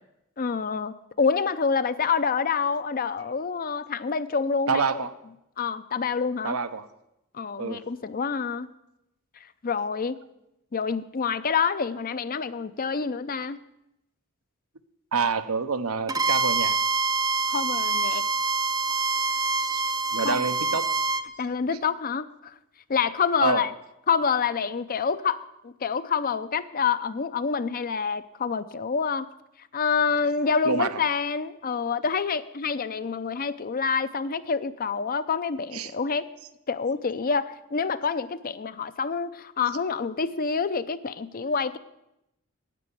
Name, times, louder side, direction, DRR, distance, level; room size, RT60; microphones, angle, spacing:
voice 1, 0.4-4.8 5.6-6.6 7.3-8.7 9.6-10.2 10.7-13.6 17.5-18.3 20.2-20.4 21.4-22.5 22.9-23.7 24.1-29.3 29.7-36.3 36.7-41.8, left 5 dB, 40° left, 14 dB, 0.5 m, -27 dB
voice 2, 4.7-5.1 6.4-6.9 7.6-7.8 15.1-16.8 19.6-19.8 20.1-20.9 23.4-23.7 30.6-31.0 35.7-35.9, right 5 dB, 80° right, 11 dB, 0.8 m, -27 dB
Bowed string instrument, 16.1-21.3, right 3 dB, 15° right, 0.4 m, -25 dB
9.8 x 8.8 x 8.4 m, 0.86 s
head